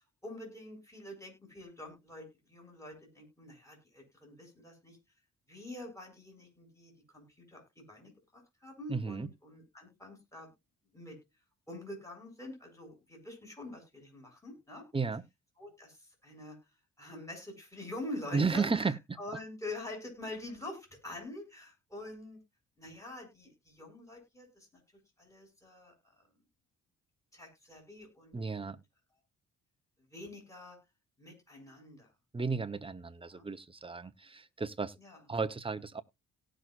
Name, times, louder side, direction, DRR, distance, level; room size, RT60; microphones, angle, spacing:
voice 1, 0.0-5.0 5.5-10.5 10.9-11.2 11.7-14.8 15.6-16.6 17.0-22.4 22.8-24.7 25.2-26.3 27.3-28.8 30.1-30.8 31.2-32.1 33.3-33.5 35.0-35.2, left 1 dB, 10° left, 7.7 m, -46 dB
voice 2, 8.9-9.3 14.9-15.2 18.3-19.0 28.3-28.8 32.3-34.9 35.3-36.0, right 4 dB, 20° right, 1.0 m, -33 dB
17.5 x 6.3 x 2.6 m
cardioid pair, 90°, 30 cm